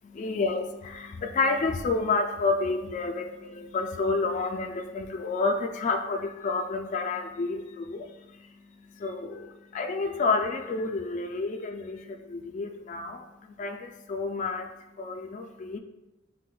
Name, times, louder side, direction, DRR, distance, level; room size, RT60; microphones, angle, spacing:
voice 1, 0.0-15.8, left 3 dB, 40° left, 4 dB, 0.3 m, -30 dB
6.3 x 3.7 x 2.3 m, 1.0 s
head